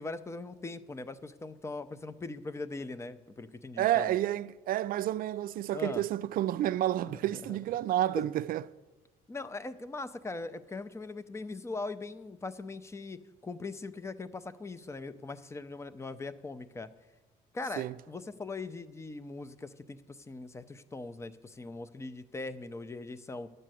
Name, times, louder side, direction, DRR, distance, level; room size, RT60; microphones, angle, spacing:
voice 1, 0.0-4.2 5.7-6.0 7.1-7.2 7.5-7.6 8.2-8.3 9.3-16.9 17.5-23.5, left 3 dB, 15° left, 0.5 m, -40 dB
voice 2, 3.8-8.6 17.8-17.9, right 13 dB, 60° right, 0.4 m, -30 dB
10.0 x 6.6 x 7.7 m
cardioid pair, 110°, 17 cm